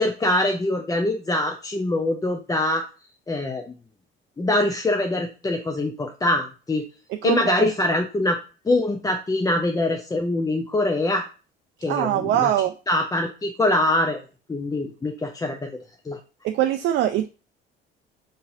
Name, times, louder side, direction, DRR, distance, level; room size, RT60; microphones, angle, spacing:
voice 1, 0.0-2.8 3.3-3.6 4.4-6.9 7.2-8.4 8.7-11.2 11.8-12.5 12.9-14.2 14.5-15.7 16.0-16.2, left 1 dB, 10° left, 3 dB, 0.5 m, -23 dB
voice 2, 7.1-7.7 11.9-12.7 16.4-17.3, right 11 dB, 40° right, 7 dB, 0.4 m, -23 dB
5.4 x 3.8 x 2.5 m, 0.34 s
figure-of-eight pair, 55°, 30 cm